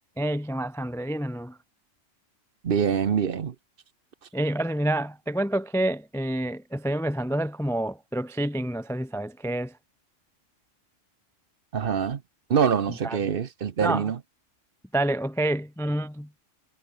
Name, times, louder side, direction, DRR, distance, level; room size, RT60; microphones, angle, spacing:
voice 1, 0.2-1.6 4.3-9.7 13.0-13.2 13.8-14.1 14.9-16.3, right 1 dB, 5° left, 0.3 m, -28 dB
voice 2, 2.6-3.5 11.7-12.2 12.5-14.2, right 7 dB, 50° right, 1.0 m, -24 dB
omnidirectional pair, 1.3 m